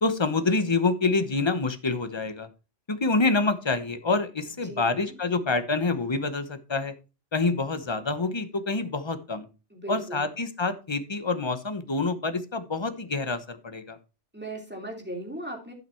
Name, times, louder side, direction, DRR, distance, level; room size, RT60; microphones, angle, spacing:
voice 1, 0.0-2.5 2.9-6.9 7.3-9.5 9.9-14.0, left 3 dB, 25° left, 10 dB, 0.9 m, -27 dB
voice 2, 4.6-5.2 9.7-10.3 14.3-15.7, right 1 dB, 10° right, 0 dB, 3.0 m, -38 dB
12.0 x 5.8 x 4.4 m, 0.32 s
omnidirectional pair, 1.2 m